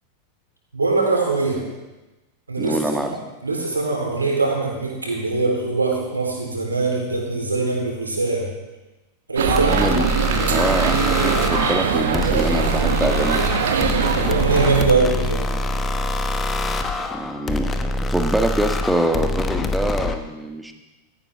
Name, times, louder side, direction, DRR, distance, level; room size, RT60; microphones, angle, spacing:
voice 1, 0.7-1.6 2.5-3.1 3.4-8.5 9.3-9.8 14.3-15.5, right 3 dB, 80° right, 0 dB, 3.9 m, -22 dB
voice 2, 2.6-3.1 9.7-10.0 10.5-13.4 17.1-17.7 18.1-20.7, right 1 dB, 5° right, 5 dB, 1.5 m, -24 dB
sound 1, 9.4-14.9, right 7 dB, 60° right, 1.3 m, -21 dB
sound 2, 9.5-20.2, left 2 dB, 20° left, 1.1 m, -25 dB
16.5 x 14.0 x 3.7 m, 1.1 s
figure-of-eight pair, 90°, 0 cm